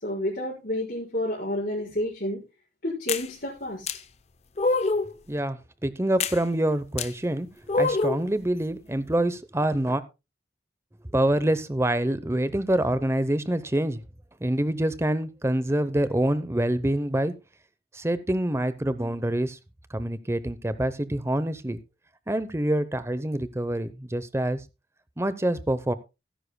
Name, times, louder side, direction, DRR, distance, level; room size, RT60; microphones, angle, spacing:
voice 1, 0.0-2.4 2.8-3.9, left 1 dB, 60° left, -9 dB, 4.7 m, -30 dB
sound 1, 3.1-3.3 3.9-4.0 4.6-5.1 6.2-6.4 7.0-7.1 7.7-8.2, left 3 dB, 40° left, 0.6 m, -24 dB
voice 2, 5.3-7.5 7.8-10.0 11.1-14.0 14.4-17.3 17.9-19.6 19.9-21.8 22.3-24.6 25.2-25.9, right 1 dB, 15° right, 14 dB, 0.7 m, -26 dB
17.5 x 10.5 x 2.2 m, 0.26 s
head